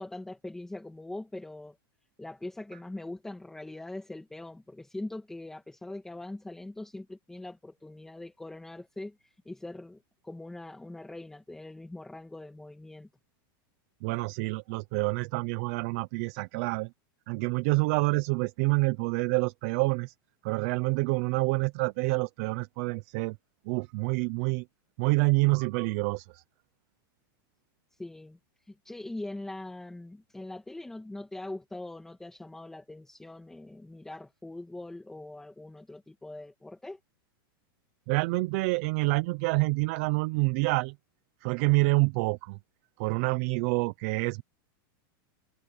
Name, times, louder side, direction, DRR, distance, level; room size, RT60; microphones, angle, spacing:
voice 1, 0.0-1.8 2.2-13.1 28.0-28.4 28.7-37.0, left 2 dB, 5° left, 1.7 m, -42 dB
voice 2, 14.0-16.9 17.3-20.1 20.4-23.4 23.7-24.6 25.0-26.4 38.1-41.0 41.4-42.6 43.0-44.4, right 26 dB, 40° right, 0.5 m, -27 dB
supercardioid pair, 170°, 12 cm